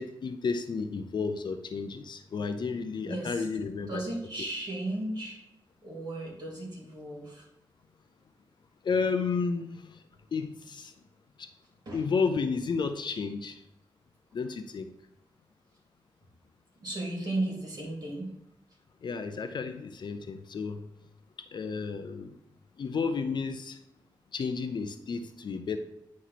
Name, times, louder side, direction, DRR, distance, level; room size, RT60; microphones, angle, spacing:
voice 1, 0.0-4.0 8.8-10.0 10.3-10.9 11.4-11.5 11.9-13.6 14.3-14.9 19.0-20.9 21.5-22.4 22.8-23.8 24.3-25.8, left 5 dB, 60° left, 8 dB, 0.6 m, -32 dB
voice 2, 3.1-3.4 3.9-5.4 5.8-7.4 11.8-12.0 16.8-18.3, right 1 dB, 50° right, -3 dB, 2.9 m, -35 dB
9.3 x 3.2 x 5.8 m, 0.82 s
wide cardioid pair, 155°, 9 cm